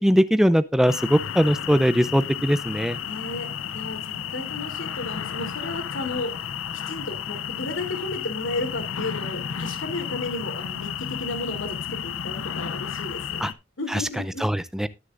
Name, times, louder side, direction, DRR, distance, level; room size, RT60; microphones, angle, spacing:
voice 1, 0.0-3.0 13.4-13.5 13.9-14.0 14.4-14.9, equal, ahead, 14 dB, 0.5 m, -21 dB
sound 1, 0.9-13.5, left 8 dB, 90° left, 0.6 m, -32 dB
voice 2, 3.1-6.3 6.9-13.4 13.8-14.4, left 2 dB, 70° left, 6 dB, 3.1 m, -33 dB
20.0 x 6.8 x 2.5 m, 0.25 s
head